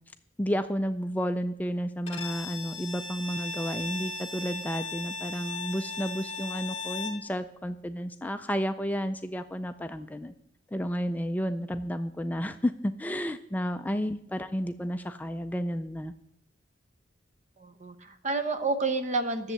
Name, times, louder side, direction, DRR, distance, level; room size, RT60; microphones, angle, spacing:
voice 1, 0.4-10.3 10.7-16.1, equal, 10° left, 8 dB, 0.3 m, -31 dB
Bowed string instrument, 2.1-7.3, left 3 dB, 30° left, 1.8 m, -37 dB
voice 2, 17.6-19.5, right 3 dB, 40° right, 9 dB, 1.0 m, -30 dB
10.5 x 7.2 x 7.9 m, 0.77 s
head